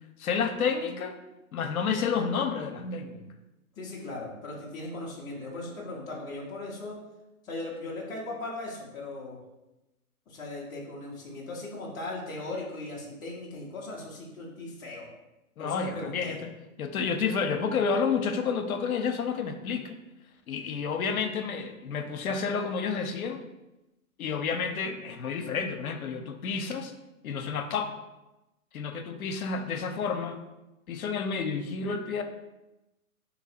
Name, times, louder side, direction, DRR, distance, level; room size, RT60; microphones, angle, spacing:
voice 1, 0.2-1.2 1.5-3.2 15.6-16.5 16.8-20.0 20.5-23.4 24.2-26.9 27.2-27.9 28.7-30.4 30.9-32.2, left 5 dB, 75° left, 7 dB, 0.7 m, -30 dB
voice 2, 3.8-7.0 7.4-9.4 10.3-15.1 15.6-16.4, left 2 dB, 10° left, -5 dB, 0.5 m, -38 dB
4.0 x 2.8 x 4.1 m, 0.98 s
hypercardioid pair, 125°, 43 cm